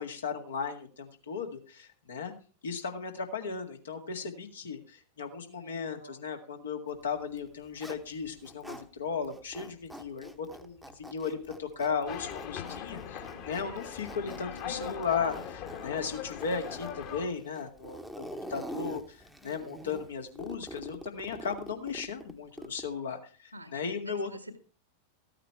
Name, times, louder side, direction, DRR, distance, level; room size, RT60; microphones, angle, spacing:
voice 1, 0.0-2.3 2.6-19.2 19.4-24.3, left 5 dB, 70° left, 4 dB, 1.9 m, -36 dB
voice 2, 5.5-6.2 14.2-15.1 23.5-24.6, left 1 dB, 85° right, 9 dB, 1.8 m, -47 dB
Zipper (clothing), 7.2-8.9 9.2-23.0, equal, ahead, 1.0 m, -45 dB
sound 1, 12.1-17.3, left 8 dB, 45° left, 1.9 m, -40 dB
14.5 x 8.9 x 4.6 m, 0.40 s
figure-of-eight pair, 90°, 0 cm